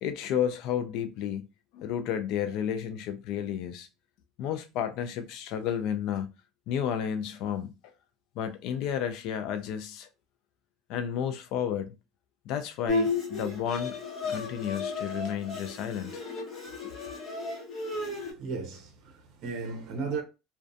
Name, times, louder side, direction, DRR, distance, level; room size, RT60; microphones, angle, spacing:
voice 1, 0.0-1.5 1.7-3.9 4.4-6.3 6.7-7.7 8.4-10.1 10.9-11.9 12.5-14.0 14.2-16.2 16.8-16.9, left 9 dB, 60° left, 0.3 m, -32 dB
Bowed string instrument, 12.9-18.3, left 4 dB, 30° left, 1.1 m, -33 dB
voice 2, 18.0-20.2, right 4 dB, 50° right, 0.6 m, -36 dB
2.4 x 2.2 x 2.5 m
cardioid pair, 145°, 0 cm